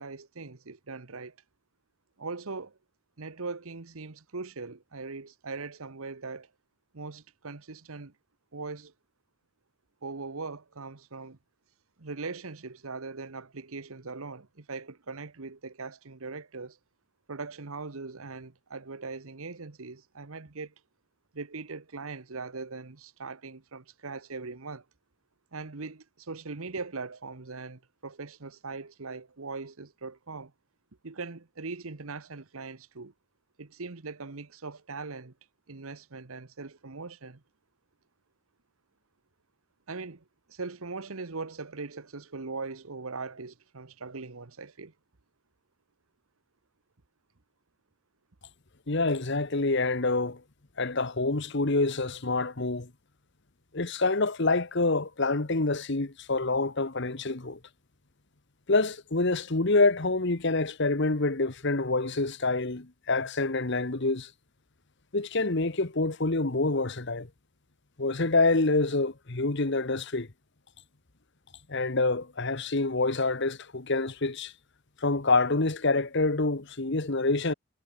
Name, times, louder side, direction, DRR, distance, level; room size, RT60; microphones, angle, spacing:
voice 1, 0.0-1.4 2.2-2.8 3.2-6.5 6.9-8.1 8.5-8.9 10.0-11.4 12.0-16.8 17.3-20.7 21.3-24.8 25.5-30.5 31.0-33.1 33.6-35.3 35.7-37.4 39.9-44.9, right 4 dB, 70° right, 1.1 m, -40 dB
voice 2, 48.9-50.4 50.8-52.9 53.7-57.6 58.7-64.3 65.1-67.3 68.0-70.3 71.7-74.5 75.0-77.5, left 3 dB, 50° left, 1.3 m, -27 dB
head